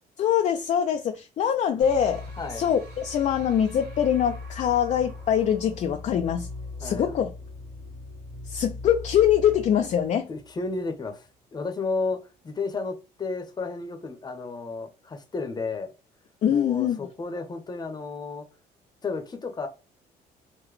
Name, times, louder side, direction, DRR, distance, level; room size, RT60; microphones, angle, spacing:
voice 1, 0.2-2.2 2.5-6.5 6.8-7.3 8.5-10.3 16.4-17.1, left 9 dB, 45° left, 0.4 m, -23 dB
sound 1, 1.8-10.9, left 2 dB, 75° right, 1.4 m, -40 dB
voice 2, 6.8-7.1 10.3-11.2 11.5-15.9 16.5-18.5 19.0-19.7, left 3 dB, 25° left, 0.7 m, -32 dB
3.8 x 2.1 x 3.1 m
cardioid pair, 110°, 17 cm